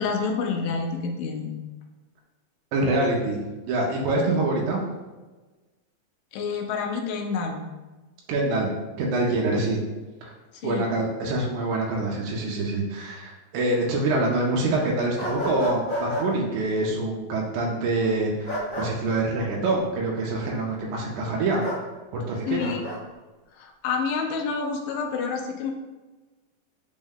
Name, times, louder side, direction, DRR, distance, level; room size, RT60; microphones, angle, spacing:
voice 1, 0.0-1.6 6.3-7.6 10.5-10.8 22.5-22.9 23.6-25.7, left 5 dB, 90° left, 3 dB, 2.2 m, -28 dB
voice 2, 2.7-3.4 3.7-4.8 8.3-8.7 9.0-9.8 10.2-10.3 10.6-21.6 22.1-22.7, right 2 dB, 80° right, -2 dB, 2.0 m, -25 dB
sound 1, 15.2-16.3 18.5-18.9 21.6-21.8 22.6-23.0, equal, 70° left, 1.0 m, -30 dB
5.3 x 2.1 x 3.5 m, 1.2 s
omnidirectional pair, 3.7 m